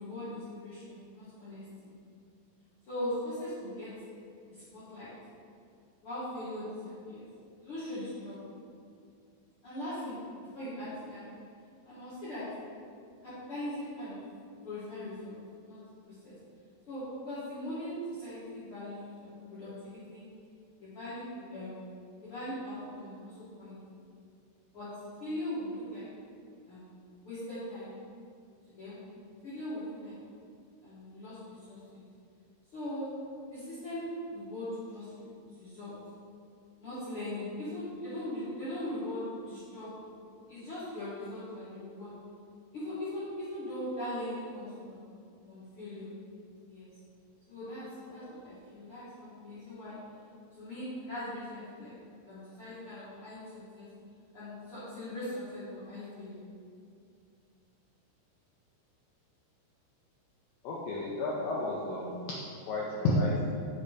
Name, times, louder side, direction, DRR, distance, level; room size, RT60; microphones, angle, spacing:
voice 1, 0.0-1.9 2.9-3.9 4.5-5.1 6.0-7.2 7.6-8.5 9.6-11.2 11.8-12.5 13.2-14.2 14.6-15.3 15.6-15.8 16.0-16.3 16.9-20.2 20.8-21.8 22.2-23.8 24.7-24.9 25.2-26.1 26.7-26.9 27.2-28.0 28.8-29.0 29.4-30.1 30.8-32.0 32.7-33.1 33.5-35.9 36.8-40.1 40.5-42.1 42.7-45.0 45.5-46.1 46.7-46.9 47.5-50.0 50.5-51.9 52.3-53.9 54.3-56.4, left 1 dB, 65° left, -12 dB, 1.3 m, -40 dB
voice 2, 60.6-63.4, left 1 dB, 85° left, -5 dB, 1.9 m, -31 dB
7.0 x 3.2 x 4.9 m, 2.3 s
omnidirectional pair, 4.7 m